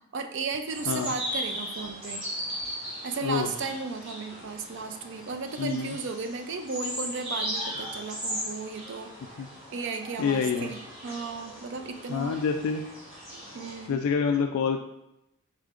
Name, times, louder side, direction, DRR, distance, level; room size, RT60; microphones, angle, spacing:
voice 1, 0.0-2.3 3.0-9.3 9.7-12.4 13.3-14.0, right 4 dB, 55° right, 7 dB, 0.4 m, -35 dB
sound 1, 0.7-13.9, equal, 25° right, 1.4 m, -38 dB
voice 2, 5.6-6.0 9.4-9.5 10.2-10.7 12.1-12.8 13.9-14.8, left 6 dB, 75° left, 4 dB, 0.3 m, -27 dB
4.8 x 4.4 x 2.5 m, 0.83 s
head